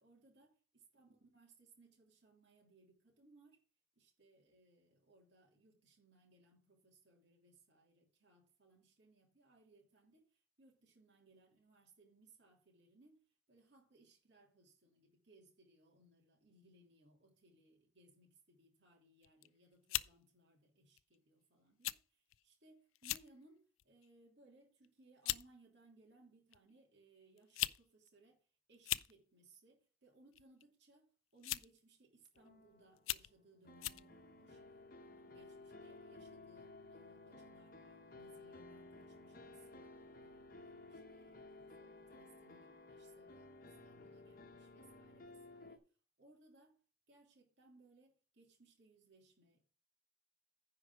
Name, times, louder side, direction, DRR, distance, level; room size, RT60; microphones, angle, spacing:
voice 1, 0.0-3.6 3.9-13.2 13.5-34.6 35.0-45.9 46.2-46.8 47.1-49.7, right 2 dB, 60° right, 3.0 m, -67 dB
sound 1, 19.2-19.5 19.9-20.1 21.0-21.2 21.8-22.0 22.3-22.4 23.0-23.3 23.8-24.1 24.8-24.9 25.3-25.5 26.5-26.6 27.4-27.8 28.1-28.2 28.7-29.1 30.3-30.6 31.4-31.8 32.4-32.5 33.0-33.3 33.8-34.0, left 16 dB, 90° left, 0.4 m, -39 dB
sound 2, 32.4-45.8, left 2 dB, 45° left, 1.1 m, -56 dB
9.9 x 4.8 x 6.1 m
head